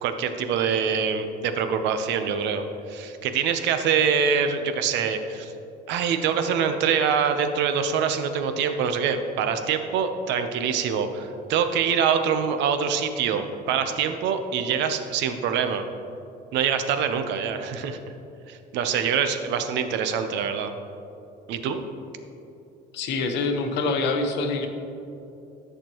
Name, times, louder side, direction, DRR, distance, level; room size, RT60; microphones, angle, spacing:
voice 1, 0.0-5.5 5.9-15.8 16.5-18.0 18.5-20.7 21.5-21.8, right 7 dB, 85° right, 8 dB, 0.7 m, -25 dB
voice 2, 22.9-24.7, left 3 dB, 80° left, 5 dB, 1.0 m, -25 dB
13.0 x 6.6 x 3.0 m, 2.8 s
cardioid pair, 130°, 18 cm